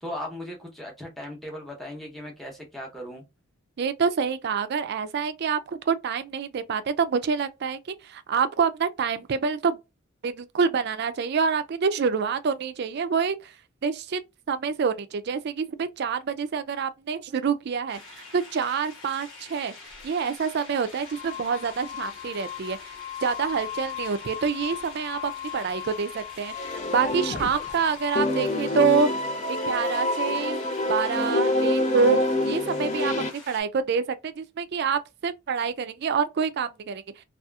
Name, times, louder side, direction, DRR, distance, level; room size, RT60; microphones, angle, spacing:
voice 1, 0.0-3.2, left 1 dB, ahead, 0.8 m, -37 dB
voice 2, 3.8-7.8 8.1-9.8 10.2-13.5 13.8-14.2 14.5-18.0 18.3-19.7 20.0-22.8 23.2-29.1 29.5-30.6 30.9-32.2 32.4-37.0, right 5 dB, 50° right, 0.4 m, -26 dB
sound 1, 17.9-33.6, left 3 dB, 65° left, 1.4 m, -46 dB
sound 2, 19.9-20.1 20.9-28.6, left 11 dB, 50° left, 0.8 m, -38 dB
sound 3, 26.5-27.8 28.1-33.3, left 2 dB, 35° left, 0.4 m, -26 dB
2.8 x 2.4 x 2.3 m
head